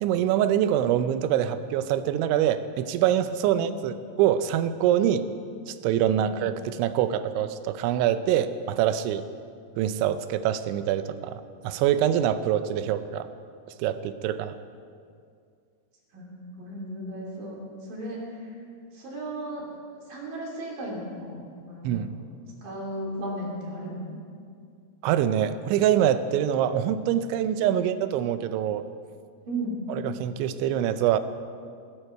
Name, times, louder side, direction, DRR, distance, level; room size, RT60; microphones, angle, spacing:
voice 1, 0.0-5.2 5.7-9.2 9.8-13.3 13.8-14.5 21.8-22.1 25.0-28.8 29.9-31.2, right 10 dB, 85° right, 11 dB, 3.0 m, -25 dB
voice 2, 16.1-18.6 18.9-19.7 20.1-22.3 22.6-24.1 29.5-29.8, right 1 dB, 50° right, -3 dB, 4.4 m, -35 dB
18.5 x 17.0 x 4.6 m, 2.3 s
omnidirectional pair, 5.4 m